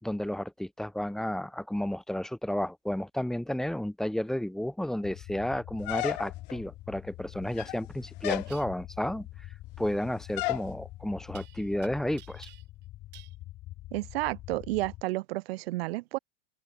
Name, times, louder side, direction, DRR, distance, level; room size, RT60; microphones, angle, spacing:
voice 1, 0.0-9.5 9.8-12.5, left 1 dB, ahead, 2.4 m, -32 dB
sound 1, 5.0-15.0, left 16 dB, 30° left, 2.0 m, -46 dB
sound 2, 5.9-6.6 7.4-7.9 8.2-8.5 10.4-10.7, left 26 dB, 50° left, 0.6 m, -32 dB
sound 3, 8.4-8.7 11.4-11.9 12.2-12.8 13.1-13.4, right 19 dB, 35° right, 7.5 m, -52 dB
voice 2, 13.9-16.2, right 19 dB, 90° right, 0.9 m, -31 dB
open air
supercardioid pair, 180°, 30 cm